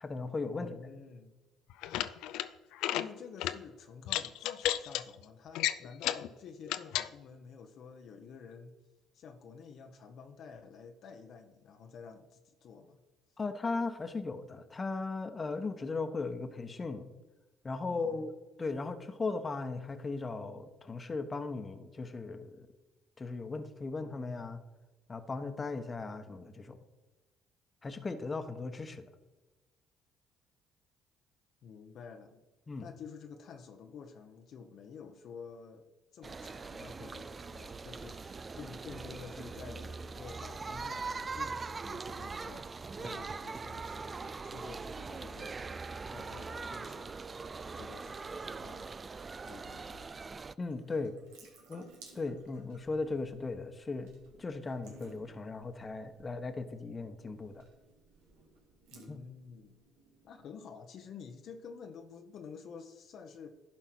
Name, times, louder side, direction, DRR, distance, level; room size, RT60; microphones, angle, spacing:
voice 1, 0.0-0.7 13.4-17.1 17.6-18.3 18.6-22.7 23.2-24.6 25.1-26.8 27.8-29.1 32.7-32.9 50.6-51.1 51.7-51.8 52.1-54.1 54.4-57.6 59.1-59.2, left 3 dB, 30° left, 9 dB, 1.0 m, -37 dB
voice 2, 0.5-1.3 2.9-8.8 9.1-13.0 17.8-18.3 31.6-32.4 32.8-35.9 36.1-42.7 43.0-45.7 46.1-47.2 47.7-48.9 49.4-50.2 58.9-59.8 60.2-63.5, left 6 dB, 60° left, 5 dB, 0.8 m, -50 dB
sound 1, 1.7-2.5 2.7-3.1 3.4-3.6 4.1-5.0 5.5-6.3 6.7-7.1, left 13 dB, 75° left, 0.4 m, -32 dB
sound 2, 36.2-50.5, right 4 dB, 30° right, 0.4 m, -42 dB
Water tap faucet / Sink (filling or washing) / Drip, 50.6-60.4, right 4 dB, 85° right, 1.8 m, -59 dB
11.5 x 4.4 x 6.0 m, 1.2 s
supercardioid pair, 70°, 0 cm